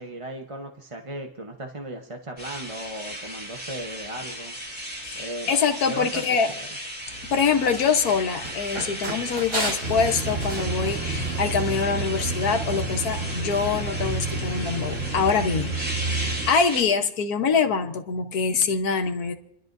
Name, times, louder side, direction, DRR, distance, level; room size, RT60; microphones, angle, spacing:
voice 1, 0.0-4.6 5.1-5.5 5.9-6.2 6.6-6.7, right 1 dB, 25° right, 2 dB, 1.0 m, -36 dB
sound 1, 2.4-16.8, equal, 5° right, 3.0 m, -36 dB
voice 2, 5.0-6.5 7.3-19.3, left 5 dB, 85° left, 5 dB, 1.6 m, -24 dB
Run, 7.1-12.2, right 1 dB, 65° right, 5.6 m, -35 dB
sound 2, 9.8-16.5, right 3 dB, 45° right, 1.9 m, -30 dB
29.0 x 12.0 x 2.6 m, 0.83 s
omnidirectional pair, 1.6 m